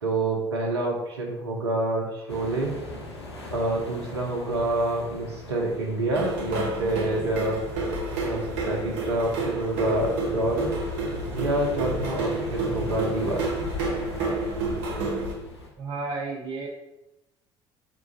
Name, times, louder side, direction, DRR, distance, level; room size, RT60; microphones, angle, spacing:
voice 1, 0.0-2.8 3.5-7.8 8.2-10.7 11.3-13.5, right 2 dB, 85° right, -1 dB, 0.6 m, -27 dB
sound 1, 2.3-15.7, left 1 dB, 85° left, 0.5 m, -41 dB
sound 2, 6.1-15.3, right 2 dB, 60° right, 1.0 m, -30 dB
voice 2, 15.8-16.7, right 3 dB, 45° right, -2 dB, 0.7 m, -32 dB
3.7 x 2.4 x 3.8 m, 0.91 s
figure-of-eight pair, 55°, 14 cm